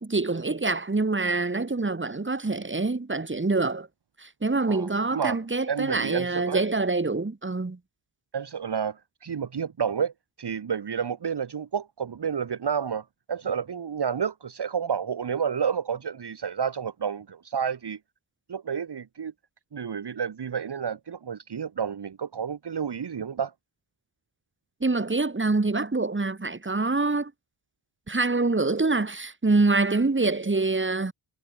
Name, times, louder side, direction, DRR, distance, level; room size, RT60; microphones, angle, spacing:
voice 1, 0.0-3.9 4.2-7.8 24.8-27.3 28.1-31.1, right 3 dB, 25° right, 2.4 m, -25 dB
voice 2, 4.7-5.4 5.7-6.6 8.3-10.1 10.4-18.0 18.5-19.3 19.7-23.5, right 7 dB, 55° right, 1.4 m, -30 dB
wide cardioid pair, 90°, 48 cm